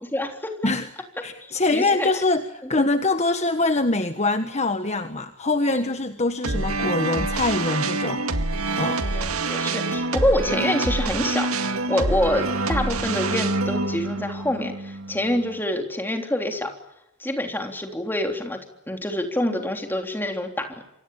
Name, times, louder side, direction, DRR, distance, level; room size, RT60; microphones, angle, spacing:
voice 1, 0.1-0.7 1.7-2.1 2.8-2.9 5.7-5.8 9.0-16.7 17.2-18.6 18.9-20.7, left 1 dB, 10° left, 4 dB, 3.5 m, -26 dB
voice 2, 1.2-8.2 8.8-9.0, left 2 dB, 30° left, 8 dB, 1.4 m, -24 dB
sound 1, 6.4-15.6, right 2 dB, 90° right, 2.0 m, -26 dB
28.0 x 25.0 x 7.2 m, 0.88 s
head